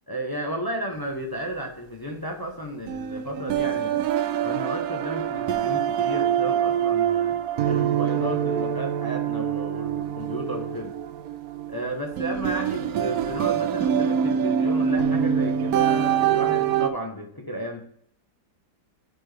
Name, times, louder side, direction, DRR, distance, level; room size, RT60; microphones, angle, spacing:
voice 1, 0.1-4.0 4.4-7.4 7.7-10.9 11.7-17.8, right 1 dB, 25° left, 2 dB, 0.5 m, -33 dB
sound 1, 2.9-16.9, right 9 dB, 70° right, 0.9 m, -25 dB
10.5 x 4.4 x 3.3 m, 0.63 s
omnidirectional pair, 1.9 m